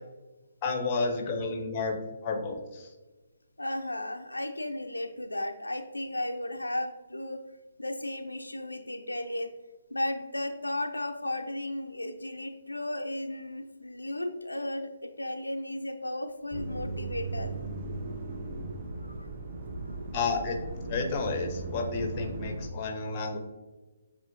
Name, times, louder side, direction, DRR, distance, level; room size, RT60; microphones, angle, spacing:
voice 1, 0.6-2.9 20.1-20.6 20.9-23.4, left 4 dB, 30° left, 4 dB, 0.7 m, -31 dB
voice 2, 3.6-7.4 7.8-9.5 9.9-17.5 19.0-19.3 19.8-20.0, left 1 dB, 80° left, 6 dB, 0.3 m, -35 dB
sound 1, 16.5-22.7, right 2 dB, 35° right, 0.6 m, -37 dB
7.0 x 2.7 x 2.6 m, 1.2 s
figure-of-eight pair, 140°, 0 cm